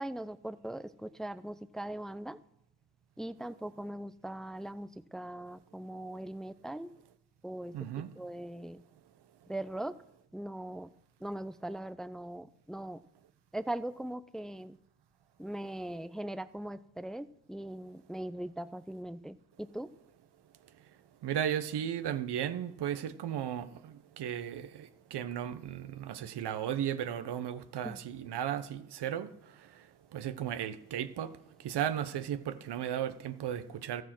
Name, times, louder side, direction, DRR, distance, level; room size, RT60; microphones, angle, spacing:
voice 1, 0.0-2.4 3.2-6.9 7.4-7.8 8.2-8.8 9.5-9.9 10.3-10.9 11.2-13.0 13.5-14.8 15.4-19.9 27.8-28.0, right 1 dB, ahead, 0.6 m, -40 dB
voice 2, 7.7-8.1 21.2-29.3 30.1-31.3 31.6-34.0, right 10 dB, 75° right, 1.0 m, -35 dB
13.0 x 9.4 x 6.1 m
supercardioid pair, 55°, 41 cm